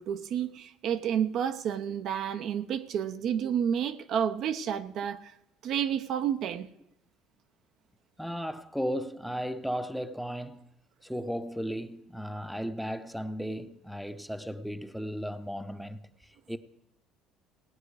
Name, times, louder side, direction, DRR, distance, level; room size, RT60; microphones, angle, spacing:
voice 1, 0.0-5.3 5.6-6.7, right 8 dB, 60° right, 0.8 m, -30 dB
voice 2, 8.2-10.7 11.0-16.6, equal, ahead, 0.8 m, -35 dB
17.5 x 9.2 x 4.8 m
supercardioid pair, 85°, 0 cm